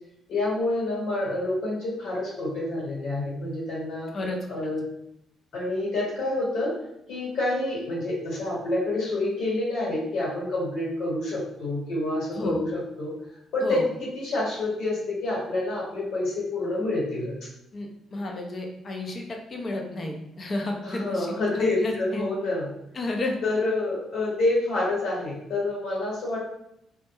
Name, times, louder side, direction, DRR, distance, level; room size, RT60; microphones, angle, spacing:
voice 1, 0.3-4.1 4.5-4.8 5.5-6.7 7.1-13.1 13.5-13.8 14.1-17.3 20.8-22.7 23.4-26.5, left 2 dB, 75° left, -6 dB, 1.2 m, -28 dB
voice 2, 4.1-4.7 12.3-12.6 13.6-13.9 17.7-22.3 22.9-23.4, left 2 dB, 40° left, 1 dB, 0.5 m, -32 dB
2.2 x 2.1 x 3.0 m, 0.78 s
cardioid pair, 90°, 0 cm